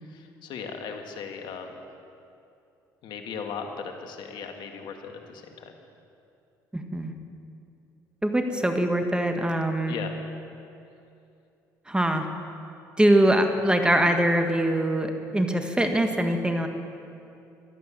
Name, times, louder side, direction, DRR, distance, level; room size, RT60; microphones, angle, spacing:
voice 1, 0.0-1.8 3.0-5.7 9.9-10.2, left 6 dB, 65° left, 4 dB, 1.8 m, -37 dB
voice 2, 6.7-7.1 8.2-9.9 11.9-12.3 13.0-16.7, right 1 dB, 10° right, 5 dB, 1.6 m, -23 dB
15.5 x 12.0 x 7.4 m, 2.6 s
supercardioid pair, 70°, 8 cm